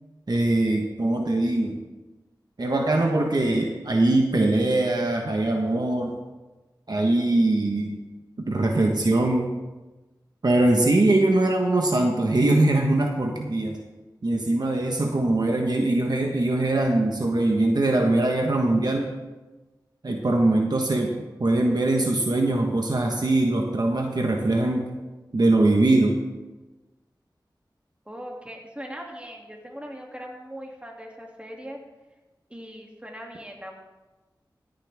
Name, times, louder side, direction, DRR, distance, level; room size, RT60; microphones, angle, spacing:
voice 1, 0.3-1.8 2.6-6.1 6.9-8.0 8.4-9.5 10.4-13.8 14.2-19.1 20.0-24.9 25.3-26.2, right 2 dB, 60° right, 2 dB, 1.3 m, -22 dB
voice 2, 28.1-31.8 32.5-33.7, equal, 15° right, 0 dB, 2.5 m, -40 dB
15.0 x 10.0 x 3.5 m, 1.1 s
wide cardioid pair, 50°, 8 cm